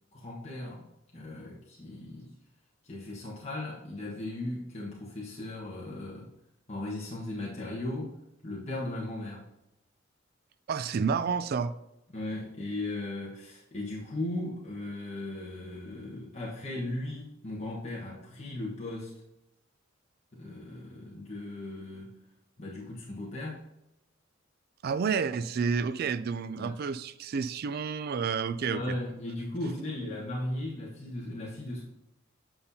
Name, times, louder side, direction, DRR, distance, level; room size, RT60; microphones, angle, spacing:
voice 1, 0.1-0.9 1.1-2.3 2.8-6.3 6.7-8.2 8.4-9.5 12.1-19.2 20.3-22.1 22.6-23.6 26.6-26.8 28.7-31.8, left 1 dB, 35° left, -5 dB, 1.2 m, -37 dB
voice 2, 10.7-11.7 24.8-29.0, right 6 dB, 50° right, 13 dB, 0.3 m, -30 dB
8.6 x 5.6 x 2.7 m, 0.90 s
head